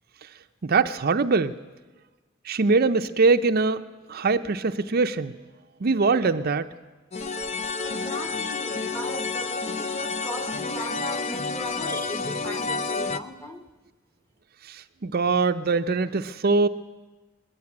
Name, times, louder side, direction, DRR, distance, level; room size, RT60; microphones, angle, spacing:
voice 1, 0.6-1.5 2.5-3.8 4.1-5.3 5.8-6.7 14.7-16.7, right 4 dB, 50° right, 9 dB, 0.6 m, -22 dB
sound 1, 7.1-13.2, left 4 dB, 35° left, 0.7 m, -30 dB
voice 2, 7.8-13.6, left 1 dB, 15° left, 6 dB, 1.4 m, -38 dB
20.0 x 14.5 x 9.7 m, 1.2 s
head